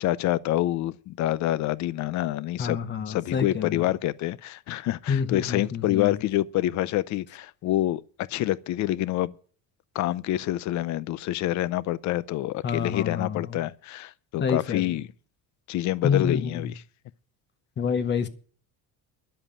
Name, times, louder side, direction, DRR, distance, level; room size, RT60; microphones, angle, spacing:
voice 1, 0.0-2.8 3.1-9.3 9.9-15.1 15.7-16.8, left 15 dB, 50° left, 0.6 m, -27 dB
voice 2, 2.6-3.9 5.1-6.2 12.6-13.5 14.4-15.0 16.0-16.7 17.8-18.3, left 6 dB, 30° left, 1.0 m, -28 dB
11.0 x 7.7 x 8.6 m
cardioid pair, 175°, 37 cm